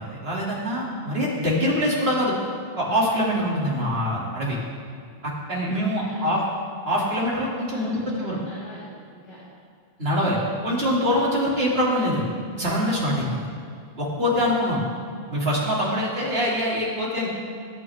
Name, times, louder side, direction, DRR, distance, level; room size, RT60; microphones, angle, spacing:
voice 1, 0.0-2.4 2.8-4.6 5.2-6.4 6.8-8.4 10.0-10.4 10.6-12.2 12.6-13.4 14.0-14.8 15.3-17.3, equal, 75° right, -5 dB, 3.1 m, -24 dB
voice 2, 5.5-6.3 7.4-9.4, left 1 dB, 50° left, -10 dB, 2.8 m, -45 dB
20.5 x 9.3 x 3.6 m, 2.3 s
omnidirectional pair, 1.0 m